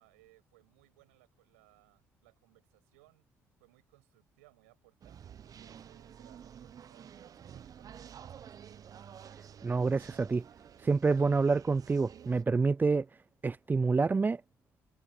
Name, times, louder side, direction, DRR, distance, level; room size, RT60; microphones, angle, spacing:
voice 1, 0.0-3.2 3.6-9.1, right 23 dB, 90° right, 6.1 m, -65 dB
sound 1, 5.0-12.4, right 8 dB, 55° right, 0.9 m, -51 dB
voice 2, 9.6-10.4 10.8-13.1 13.4-14.4, right 4 dB, 25° right, 0.4 m, -27 dB
hypercardioid pair, 55°, 7 cm